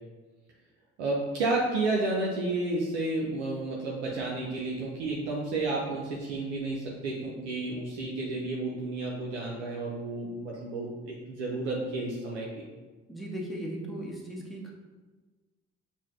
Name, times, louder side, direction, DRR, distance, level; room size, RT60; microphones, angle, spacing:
voice 1, 1.0-12.5, right 2 dB, 85° right, -3 dB, 0.6 m, -31 dB
voice 2, 13.1-14.7, right 1 dB, ahead, -2 dB, 0.8 m, -37 dB
5.6 x 2.2 x 3.0 m, 1.3 s
hypercardioid pair, 50°, 34 cm